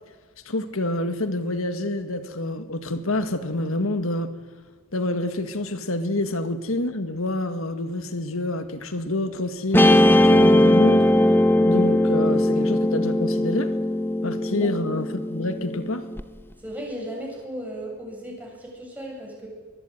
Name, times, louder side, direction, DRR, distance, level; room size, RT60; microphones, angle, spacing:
voice 1, 0.5-4.3 4.9-11.1 11.6-13.7 14.2-16.0, left 1 dB, 70° left, 2.0 m, -27 dB
Guitar, 9.7-16.2, left 1 dB, 10° left, 1.0 m, -19 dB
voice 2, 16.6-19.5, equal, 5° right, 7.6 m, -35 dB
24.0 x 21.0 x 9.3 m
head